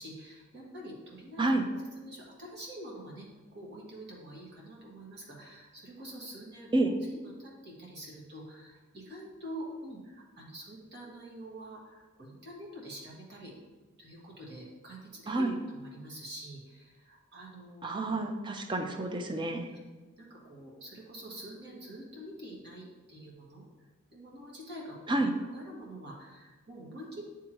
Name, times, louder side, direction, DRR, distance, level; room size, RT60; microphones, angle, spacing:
voice 1, 0.0-1.4 1.9-3.3 3.5-13.5 14.0-18.2 19.7-19.8 20.2-23.7 24.1-25.2 25.5-27.3, right 1 dB, 55° right, -4 dB, 1.7 m, -46 dB
voice 2, 15.3-15.6 17.8-19.7 25.1-25.3, right 2 dB, 25° right, 5 dB, 0.5 m, -29 dB
10.0 x 3.5 x 3.0 m, 1.3 s
head